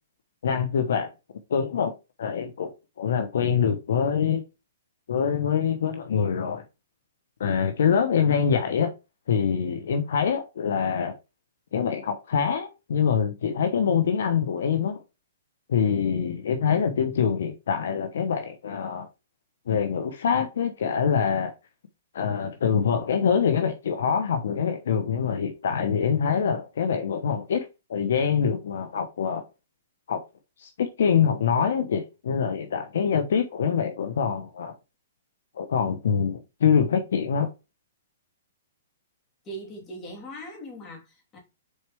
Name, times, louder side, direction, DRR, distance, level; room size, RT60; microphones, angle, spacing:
voice 1, 0.4-1.1 1.5-1.9 2.2-2.7 3.0-4.4 5.1-6.6 7.4-8.9 9.3-11.1 11.7-15.0 15.7-19.1 19.7-21.5 22.1-29.4 30.1-30.2 30.6-34.7 35.6-37.5, left 7 dB, 70° left, 1.0 m, -25 dB
voice 2, 39.4-41.4, right 1 dB, 20° left, 2.8 m, -40 dB
6.6 x 4.3 x 3.4 m
hypercardioid pair, 155°, 0 cm